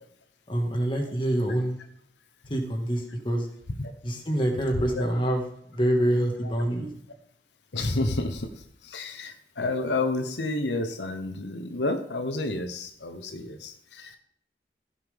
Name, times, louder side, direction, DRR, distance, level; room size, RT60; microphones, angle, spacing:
voice 1, 0.5-1.8 2.5-3.5 4.0-5.4 5.7-6.9, right 1 dB, 30° left, 2 dB, 1.8 m, -26 dB
voice 2, 4.7-5.1 6.4-6.5 7.7-14.2, left 2 dB, 85° left, 8 dB, 0.9 m, -30 dB
16.0 x 7.2 x 3.6 m, 0.71 s
head